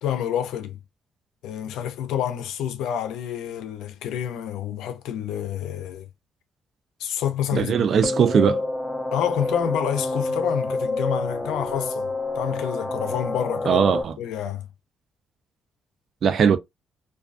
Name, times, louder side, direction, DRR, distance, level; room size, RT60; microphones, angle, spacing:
voice 1, 0.0-0.8 1.4-6.1 7.0-7.9 9.1-12.1 12.4-13.9 14.2-14.7, left 10 dB, 90° left, 0.5 m, -28 dB
voice 2, 7.5-8.6 13.7-14.2 16.2-16.6, right 7 dB, 60° right, 0.4 m, -19 dB
sound 1, 8.0-14.0, left 2 dB, 10° left, 0.8 m, -28 dB
2.3 x 2.3 x 2.4 m
cardioid pair, 90°, 0 cm